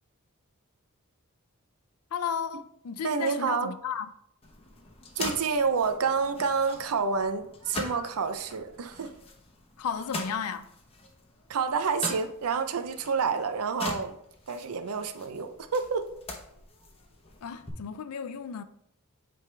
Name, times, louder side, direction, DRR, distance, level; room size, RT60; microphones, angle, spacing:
voice 1, 2.1-4.1 9.8-10.7 17.4-18.6, left 7 dB, 90° left, 0.4 m, -34 dB
voice 2, 3.0-3.7 5.2-9.1 11.5-14.2 14.5-16.1, right 5 dB, 85° right, 0.5 m, -28 dB
sound 1, 4.4-17.7, left 2 dB, 25° left, 0.9 m, -42 dB
8.3 x 3.4 x 3.3 m
head